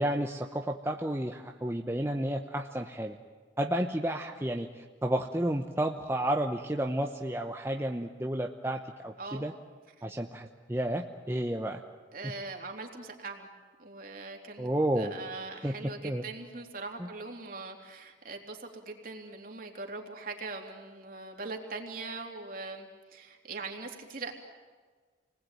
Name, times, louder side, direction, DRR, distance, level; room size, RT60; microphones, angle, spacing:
voice 1, 0.0-3.2 3.6-9.5 10.0-11.8 12.2-12.3 14.6-15.1 15.5-15.7 16.0-16.2 17.0-17.1, right 1 dB, 15° right, 3 dB, 0.9 m, -31 dB
voice 2, 12.1-13.5 13.8-24.3, right 3 dB, 50° right, 2 dB, 3.3 m, -41 dB
29.5 x 20.5 x 9.2 m, 1.5 s
head